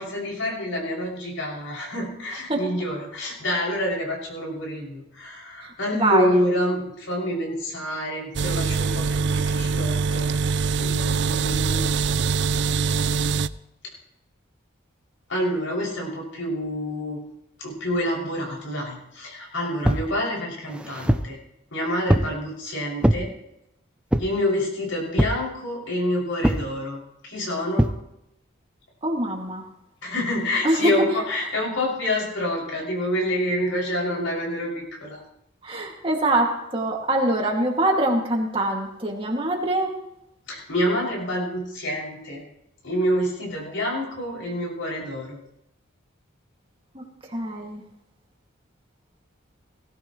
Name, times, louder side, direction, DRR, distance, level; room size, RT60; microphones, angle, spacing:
voice 1, 0.0-10.3 10.8-11.9 15.3-17.2 17.6-21.4 21.7-23.3 24.2-27.9 30.0-35.2 40.5-42.4 42.8-45.4, left 1 dB, 75° left, -2 dB, 6.7 m, -27 dB
voice 2, 5.9-6.4 29.0-29.6 30.6-30.9 35.6-39.9 46.9-47.0 47.3-47.8, right 1 dB, 25° right, 0 dB, 2.3 m, -23 dB
sound 1, 8.3-13.5, right 5 dB, 60° right, 0.4 m, -23 dB
sound 2, 19.8-20.1 20.7-21.3 22.1-22.4 23.0-23.3 24.1-24.4 25.2-25.5 26.4-26.7 27.8-28.0, equal, 5° right, 0.5 m, -22 dB
19.0 x 16.0 x 3.2 m, 0.82 s
head